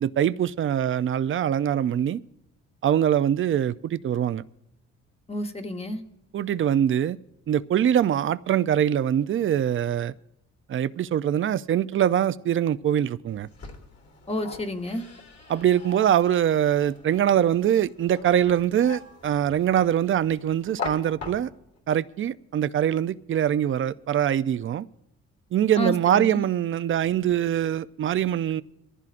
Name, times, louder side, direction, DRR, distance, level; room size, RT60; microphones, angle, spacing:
voice 1, 0.0-2.2 2.8-4.4 6.3-7.2 7.5-10.1 10.7-13.5 15.5-21.5 21.9-24.9 25.5-28.6, right 10 dB, 45° right, 0.5 m, -23 dB
voice 2, 5.3-6.0 14.3-15.1 25.8-26.4, left 1 dB, 20° left, 1.1 m, -30 dB
sound 1, 13.3-21.8, left 4 dB, 55° left, 2.5 m, -42 dB
22.5 x 14.5 x 2.5 m
cardioid pair, 90°, 30 cm